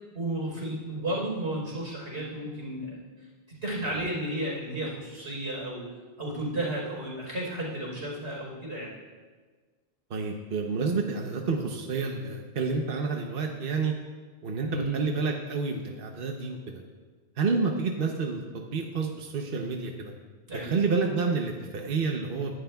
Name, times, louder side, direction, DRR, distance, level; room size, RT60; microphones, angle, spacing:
voice 1, 0.1-3.0 3.5-5.9 6.2-8.9 14.7-15.0 20.5-20.7, right 1 dB, 90° right, -4 dB, 4.4 m, -33 dB
voice 2, 10.1-13.9 14.4-16.8 17.4-20.1 20.6-22.5, right 4 dB, 60° right, 2 dB, 1.1 m, -29 dB
21.5 x 11.5 x 2.3 m, 1.4 s
omnidirectional pair, 1.1 m